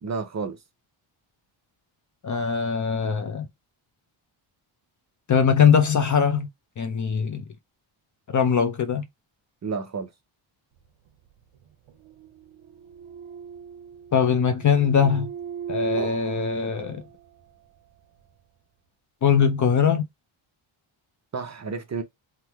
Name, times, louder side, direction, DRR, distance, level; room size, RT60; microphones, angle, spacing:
voice 1, 0.0-0.6 9.6-10.1 21.3-22.0, right 5 dB, 35° right, 0.5 m, -30 dB
voice 2, 2.2-3.5 5.3-6.5 6.8-7.4 8.3-9.0 14.1-15.3 15.7-17.0 19.2-20.0, left 7 dB, 40° left, 0.5 m, -21 dB
sound 1, 11.1-17.6, right 10 dB, 70° right, 0.7 m, -37 dB
3.0 x 2.1 x 3.3 m
wide cardioid pair, 160°, 50 cm